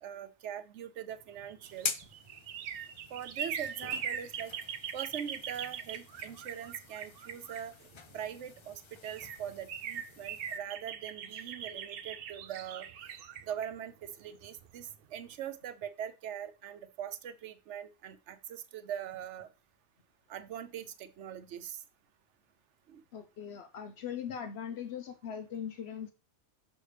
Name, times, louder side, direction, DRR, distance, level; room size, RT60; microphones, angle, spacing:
voice 1, 0.0-1.9 3.1-4.5 4.9-7.7 8.1-12.9 13.5-19.5 20.3-21.8 22.9-23.0, right 9 dB, 85° right, 12 dB, 1.0 m, -42 dB
sound 1, 1.4-8.2 8.7-8.8 9.0-14.8 15.2-15.3, right 8 dB, 65° right, 0.7 m, -41 dB
sound 2, 1.6-10.6, left 5 dB, 40° left, 0.4 m, -45 dB
voice 2, 23.1-26.1, left 8 dB, 70° left, 8 dB, 0.9 m, -40 dB
6.4 x 6.3 x 3.3 m, 0.31 s
omnidirectional pair, 1.2 m